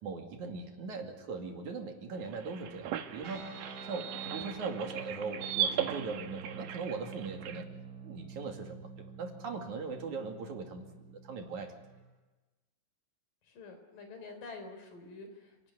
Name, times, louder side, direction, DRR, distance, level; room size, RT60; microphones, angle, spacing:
voice 1, 0.0-3.6 3.9-7.7 8.0-11.7, right 4 dB, 65° right, 3 dB, 3.8 m, -40 dB
sound 1, 2.1-7.6, right 10 dB, 85° right, 3.0 m, -38 dB
sound 2, 3.2-12.1, right 4 dB, 30° right, 3.6 m, -48 dB
voice 2, 13.4-15.7, left 3 dB, 80° left, 6 dB, 5.7 m, -48 dB
29.0 x 18.5 x 9.5 m, 1.2 s
omnidirectional pair, 3.8 m